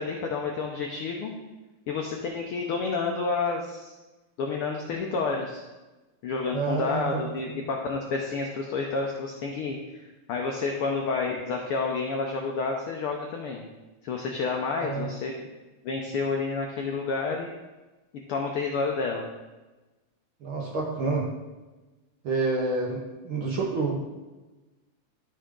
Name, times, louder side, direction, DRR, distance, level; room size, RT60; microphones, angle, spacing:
voice 1, 0.0-1.3 1.9-4.0 4.4-5.6 6.2-13.6 14.0-15.4 15.8-17.5 18.3-19.3, left 4 dB, 85° left, 1 dB, 1.2 m, -30 dB
voice 2, 6.5-7.2 14.8-15.1 20.4-21.3 22.2-24.0, right 3 dB, 60° right, -1 dB, 1.5 m, -28 dB
12.5 x 5.0 x 3.7 m, 1.2 s
omnidirectional pair, 3.4 m